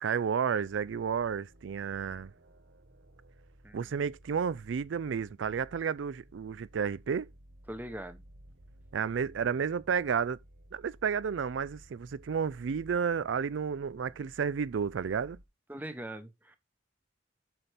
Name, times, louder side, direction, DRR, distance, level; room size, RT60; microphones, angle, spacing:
voice 1, 0.0-2.3 3.7-7.3 8.9-10.4 10.7-15.4, right 6 dB, 90° right, 0.4 m, -31 dB
sound 1, 0.6-15.5, right 1 dB, 65° right, 0.9 m, -56 dB
voice 2, 3.6-3.9 7.7-8.2 15.7-16.6, right 1 dB, 10° right, 0.9 m, -41 dB
7.9 x 5.9 x 3.4 m
head